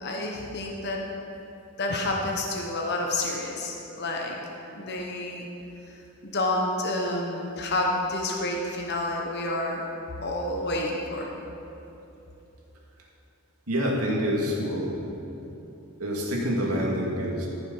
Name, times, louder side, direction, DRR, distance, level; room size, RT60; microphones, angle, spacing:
voice 1, 0.0-1.0 1.8-4.4 4.7-5.5 6.2-9.8 10.2-11.3, left 2 dB, 50° left, 0 dB, 1.0 m, -29 dB
voice 2, 13.7-15.0 16.0-17.5, equal, 90° right, -2 dB, 2.3 m, -27 dB
14.5 x 7.2 x 5.6 m, 3.0 s
head